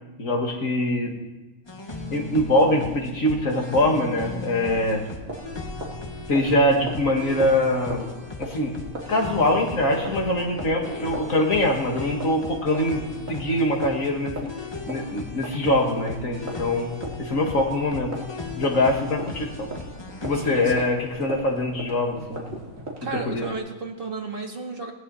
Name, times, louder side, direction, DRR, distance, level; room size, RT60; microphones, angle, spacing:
voice 1, 0.2-1.1 2.1-5.0 6.3-8.1 8.4-8.7 9.1-13.0 13.3-14.5 14.9-16.9 17.2-18.1 18.6-19.7 20.2-22.4 23.3-23.5, left 1 dB, 80° left, 1 dB, 2.6 m, -23 dB
sound 1, 1.7-20.9, left 3 dB, 20° left, 1.5 m, -37 dB
sound 2, 4.0-23.5, right 1 dB, 80° right, 3.0 m, -39 dB
voice 2, 20.3-20.9 23.0-24.9, right 3 dB, 45° right, 1 dB, 2.1 m, -33 dB
18.5 x 18.0 x 4.2 m, 1.1 s
omnidirectional pair, 1.4 m